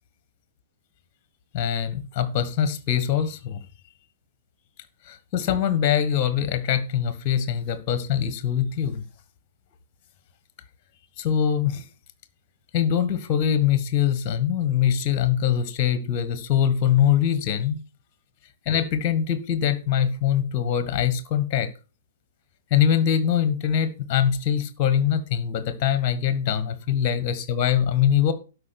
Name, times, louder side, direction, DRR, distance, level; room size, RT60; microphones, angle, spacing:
voice 1, 1.5-3.6 5.1-9.0 11.2-11.8 12.7-17.8 18.6-21.7 22.7-28.3, left 9 dB, 35° left, 1.5 m, -23 dB
12.0 x 4.9 x 6.1 m
figure-of-eight pair, 110°, 0 cm